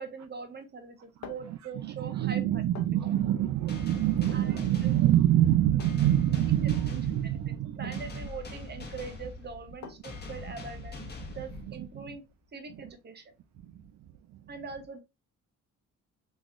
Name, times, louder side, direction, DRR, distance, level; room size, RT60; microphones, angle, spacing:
voice 1, 0.0-2.6 4.3-5.0 7.2-7.4 7.8-11.0 11.3-12.2 12.5-13.3 14.5-15.0, right 5 dB, 35° right, 0.9 m, -42 dB
sound 1, 0.8-12.3, left 6 dB, 60° left, 0.8 m, -52 dB
voice 2, 1.2-8.1 10.4-10.5 11.3-12.1 12.7-12.8 13.6-13.8 14.3-14.4, right 12 dB, 65° right, 0.5 m, -27 dB
sound 2, 3.7-12.1, left 3 dB, 35° left, 1.2 m, -43 dB
3.8 x 3.0 x 2.5 m
cardioid pair, 90°, 30 cm